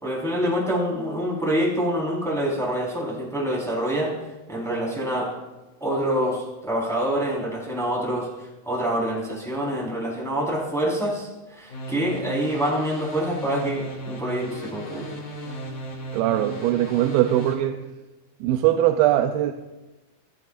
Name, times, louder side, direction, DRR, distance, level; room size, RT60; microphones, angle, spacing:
voice 1, 0.0-4.1 4.5-5.3 5.8-15.1, equal, ahead, 3.7 m, -26 dB
sound 1, 11.7-17.5, right 1 dB, 70° left, 4.4 m, -35 dB
voice 2, 16.1-17.9 18.4-19.5, right 13 dB, 80° right, 2.4 m, -21 dB
26.5 x 14.0 x 2.5 m
omnidirectional pair, 4.4 m